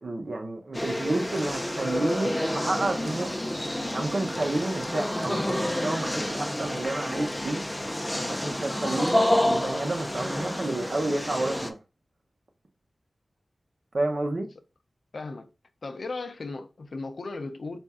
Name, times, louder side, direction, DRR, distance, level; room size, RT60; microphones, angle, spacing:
voice 1, 0.0-3.5 3.9-7.6 8.3-11.8 13.9-14.5, right 2 dB, 55° right, 0.9 m, -30 dB
sound 1, 0.7-11.7, left 1 dB, 10° left, 0.5 m, -29 dB
voice 2, 15.1-15.5 15.8-17.8, left 3 dB, 65° left, 0.6 m, -36 dB
4.3 x 2.6 x 3.6 m
wide cardioid pair, 95°, 0 cm